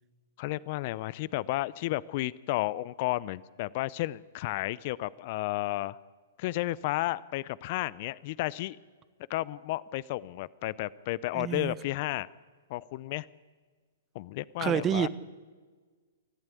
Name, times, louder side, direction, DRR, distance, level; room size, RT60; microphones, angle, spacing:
voice 1, 0.4-6.0 6.4-8.8 9.3-12.3 12.7-13.3 14.1-15.1, left 17 dB, 45° left, 21 dB, 0.6 m, -32 dB
voice 2, 11.3-11.8 14.6-15.1, right 9 dB, 25° right, 15 dB, 1.1 m, -28 dB
28.0 x 14.0 x 8.4 m, 1.5 s
hypercardioid pair, 120°, 0 cm